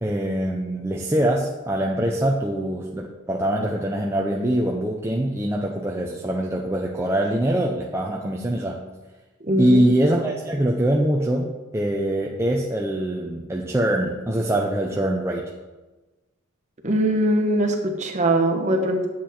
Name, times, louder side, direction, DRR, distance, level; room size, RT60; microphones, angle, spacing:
voice 1, 0.0-8.8 9.6-15.5, right 1 dB, 10° right, -1 dB, 0.6 m, -23 dB
voice 2, 9.4-9.8 16.8-19.1, right 1 dB, 30° right, 2 dB, 1.2 m, -21 dB
9.9 x 7.6 x 4.3 m, 1.2 s
head